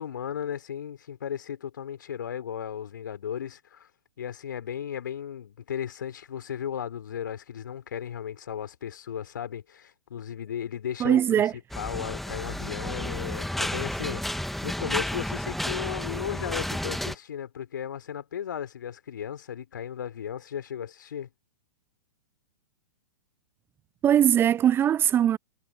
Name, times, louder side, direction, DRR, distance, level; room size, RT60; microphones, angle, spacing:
voice 1, 0.0-3.9 4.2-21.3, left 9 dB, 65° left, 3.6 m, -35 dB
voice 2, 11.0-11.5 24.0-25.4, right 10 dB, 20° right, 0.6 m, -21 dB
sound 1, 11.7-17.1, left 1 dB, ahead, 1.8 m, -32 dB
figure-of-eight pair, 105°, 11 cm